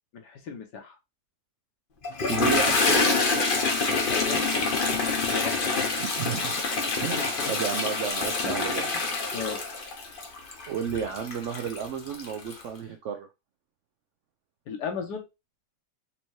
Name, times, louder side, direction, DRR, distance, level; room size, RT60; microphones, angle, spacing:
voice 1, 0.1-0.9 4.0-4.8 5.2-5.9 6.9-7.5 9.3-9.6 14.7-15.2, left 6 dB, 75° left, 3 dB, 1.4 m, -36 dB
Toilet flush, 2.0-12.6, left 3 dB, 50° left, 0.6 m, -26 dB
voice 2, 2.3-3.4 6.0-6.6 7.0-8.9 10.7-13.3, right 7 dB, 90° right, 6 dB, 0.6 m, -32 dB
4.3 x 2.7 x 3.0 m, 0.24 s
omnidirectional pair, 1.8 m